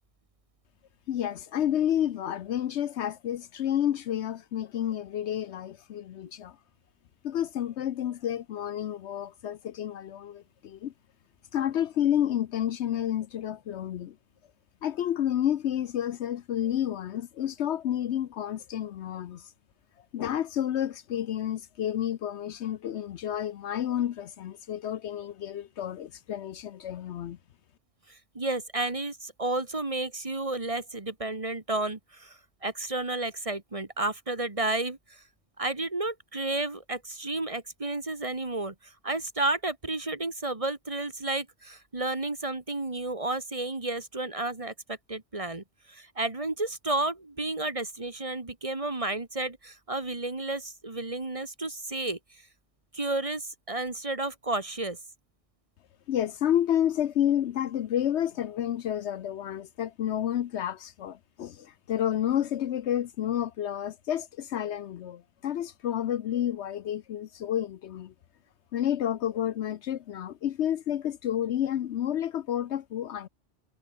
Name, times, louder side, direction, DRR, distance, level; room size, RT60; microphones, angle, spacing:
voice 1, 1.1-6.6 7.2-10.9 11.5-14.2 14.8-19.4 20.1-27.4 56.1-68.1 68.7-73.3, left 10 dB, 70° left, 0.9 m, -30 dB
voice 2, 28.1-35.2 35.6-52.4 52.9-55.0, right 2 dB, 30° right, 1.6 m, -32 dB
omnidirectional pair, 1.3 m